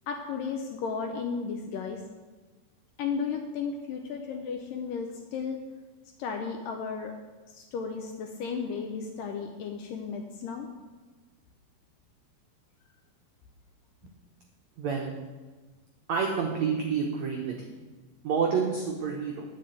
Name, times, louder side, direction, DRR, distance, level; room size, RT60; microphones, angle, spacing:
voice 1, 0.1-2.0 3.0-5.6 6.2-7.1 7.5-10.7, left 5 dB, 80° left, 4 dB, 2.0 m, -34 dB
voice 2, 14.8-15.1 16.1-17.5 18.2-19.4, right 6 dB, 85° right, 0 dB, 1.5 m, -28 dB
10.0 x 5.7 x 7.9 m, 1.3 s
omnidirectional pair, 4.6 m